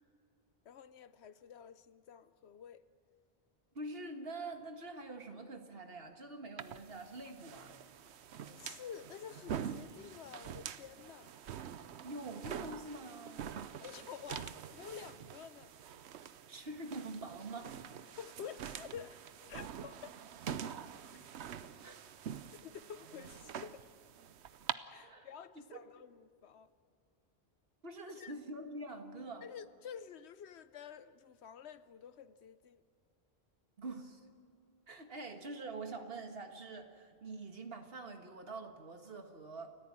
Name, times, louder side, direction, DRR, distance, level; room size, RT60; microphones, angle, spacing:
voice 1, 0.6-2.8 8.4-11.3 13.8-15.7 18.1-19.2 19.5-20.2 22.5-23.9 24.9-26.7 28.2-28.3 29.4-32.8, left 8 dB, 85° left, 1.0 m, -50 dB
voice 2, 3.7-7.7 12.0-13.6 16.5-17.8 21.8-22.0 25.0-25.3 25.6-25.8 27.8-29.5 33.8-34.2 34.9-39.7, right 2 dB, 65° right, 2.0 m, -45 dB
sound 1, 6.6-24.7, right 8 dB, 90° right, 1.0 m, -46 dB
29.0 x 14.0 x 8.8 m
omnidirectional pair, 1.1 m